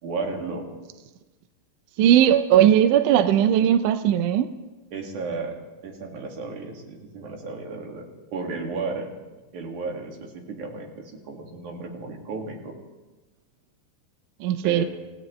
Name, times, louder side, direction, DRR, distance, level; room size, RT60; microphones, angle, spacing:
voice 1, 0.0-0.7 4.9-5.6 5.8-8.0 8.3-9.1 9.5-12.8 14.6-14.9, right 3 dB, 60° right, 0 dB, 3.4 m, -33 dB
voice 2, 2.0-4.5 14.4-14.8, right 10 dB, 80° right, 10 dB, 1.8 m, -18 dB
28.0 x 16.0 x 3.2 m, 1.2 s
omnidirectional pair, 4.2 m